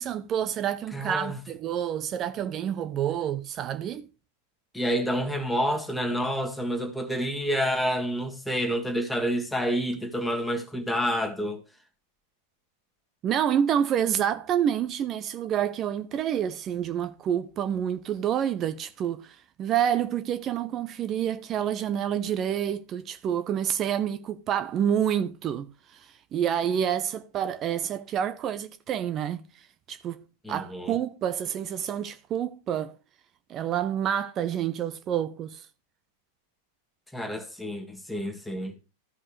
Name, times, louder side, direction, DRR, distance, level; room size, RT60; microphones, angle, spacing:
voice 1, 0.0-4.1 13.2-29.4 29.9-33.0 33.5-35.7, right 9 dB, 30° right, 0.6 m, -28 dB
voice 2, 0.9-1.4 4.7-11.6 30.4-31.0 37.1-38.8, equal, 5° left, 1.9 m, -28 dB
14.5 x 5.4 x 3.2 m
figure-of-eight pair, 90°, 0 cm